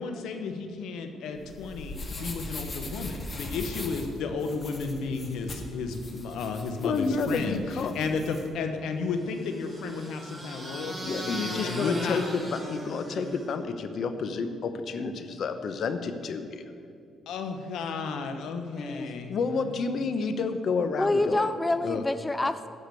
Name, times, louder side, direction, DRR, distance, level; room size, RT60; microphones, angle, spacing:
voice 1, 0.0-7.6 7.9-12.2 17.3-19.8, left 4 dB, 85° left, 6 dB, 1.1 m, -33 dB
sound 1, 1.4-8.4, left 2 dB, 40° left, 1.9 m, -40 dB
voice 2, 6.8-7.9 11.0-16.7 19.3-21.5 21.8-22.0, left 4 dB, 60° left, 9 dB, 0.9 m, -30 dB
sound 2, 9.1-13.7, right 1 dB, 15° right, 3.0 m, -38 dB
voice 3, 18.8-19.1 21.0-22.7, left 2 dB, 15° left, 12 dB, 0.4 m, -27 dB
14.0 x 5.1 x 8.4 m, 2.5 s
cardioid pair, 90°, 0 cm